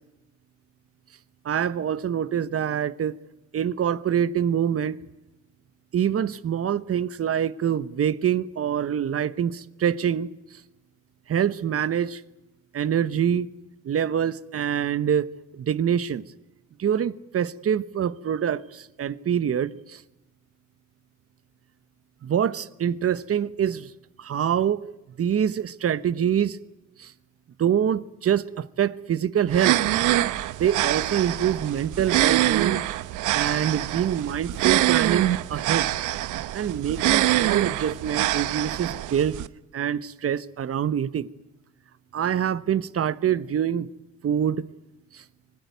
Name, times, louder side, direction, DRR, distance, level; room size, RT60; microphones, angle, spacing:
voice 1, 1.4-3.1 3.5-5.0 5.9-10.3 11.3-12.2 12.7-13.5 13.8-16.2 16.8-20.0 22.2-23.9 24.2-24.8 25.2-26.6 27.0-27.1 27.6-29.8 30.6-32.8 33.3-35.9 36.5-39.4 39.7-41.3 42.1-43.9 44.2-44.6 45.1-45.2, right 9 dB, 50° right, 1.1 m, -25 dB
sound 1, 29.5-39.5, right 14 dB, 90° right, 0.9 m, -24 dB
25.0 x 20.0 x 9.4 m
cardioid pair, 90°, 30 cm